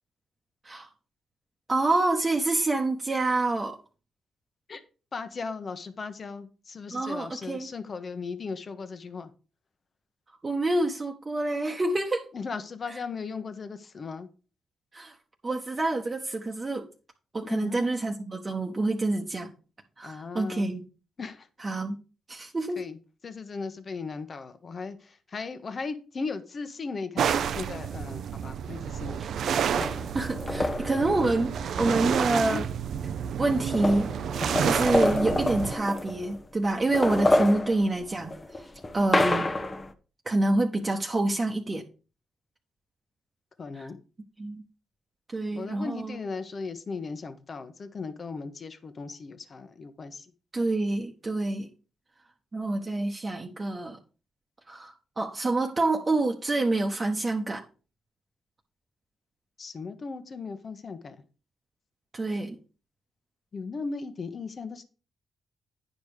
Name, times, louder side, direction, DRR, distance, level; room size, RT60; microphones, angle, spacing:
voice 1, 1.7-3.8 6.9-7.7 10.4-12.3 12.9-13.0 14.9-15.2 15.4-16.8 17.3-19.5 20.0-20.8 21.6-21.9 22.3-22.8 29.2-29.3 30.1-32.7 33.4-34.1 34.6-38.6 38.9-39.5 40.2-41.9 43.7-43.9 44.4-44.6 45.3-46.2 50.5-51.7 52.5-54.0 54.7-57.6 62.1-62.6, right 2 dB, 30° right, 1 dB, 1.1 m, -27 dB
voice 2, 5.1-9.3 12.3-14.3 17.4-17.9 20.0-20.7 21.2-21.5 22.8-23.0 23.2-29.2 32.4-32.6 37.4-37.6 43.6-44.0 45.5-50.2 59.6-61.2 63.5-64.8, left 4 dB, 50° left, 10 dB, 1.2 m, -37 dB
sound 1, 27.2-35.7, right 8 dB, 70° right, 0.6 m, -30 dB
sound 2, 29.8-32.0 32.9-33.0 33.3-36.4 36.8-39.9, left 2 dB, 25° left, 1.0 m, -28 dB
9.8 x 5.2 x 4.9 m, 0.36 s
cardioid pair, 70°, 0 cm